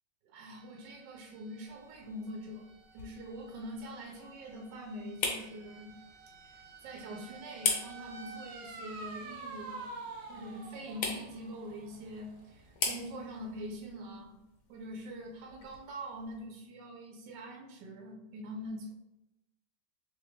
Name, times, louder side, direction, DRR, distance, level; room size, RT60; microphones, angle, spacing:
voice 1, 0.2-2.7 2.9-5.9 6.4-10.0 10.3-14.4 14.7-18.9, equal, 85° right, 1 dB, 1.3 m, -44 dB
sound 1, 0.6-13.9, right 3 dB, 65° right, 0.9 m, -50 dB
sound 2, 1.7-16.4, left 4 dB, 70° left, 1.4 m, -42 dB
3.4 x 3.2 x 3.3 m, 0.94 s
omnidirectional pair, 1.9 m